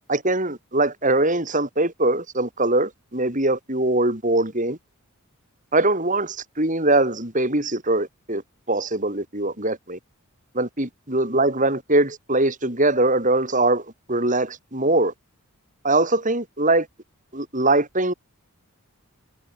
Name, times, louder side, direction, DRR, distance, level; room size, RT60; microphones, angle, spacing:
voice 1, 0.1-4.8 5.7-8.4 8.7-10.0 10.5-13.8 14.1-15.1 15.8-16.9 17.3-18.1, right 2 dB, 35° right, 5.8 m, -22 dB
head